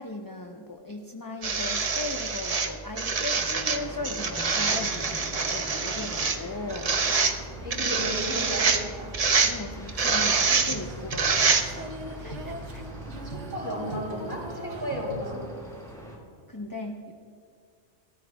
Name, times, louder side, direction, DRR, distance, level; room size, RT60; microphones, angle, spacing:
voice 1, 0.0-7.0 9.4-12.8 16.5-17.1, left 2 dB, 20° left, 3 dB, 0.6 m, -38 dB
sound 1, 1.4-12.0 13.0-13.1, right 4 dB, 35° right, 0.7 m, -26 dB
sound 2, 3.3-16.2, equal, 5° left, 2.9 m, -43 dB
voice 2, 7.6-9.1 13.3-15.4, equal, 20° right, -4 dB, 4.8 m, -34 dB
Female singing, 10.4-15.9, right 1 dB, 80° right, 1.4 m, -40 dB
28.5 x 14.0 x 2.3 m, 2.2 s
omnidirectional pair, 1.2 m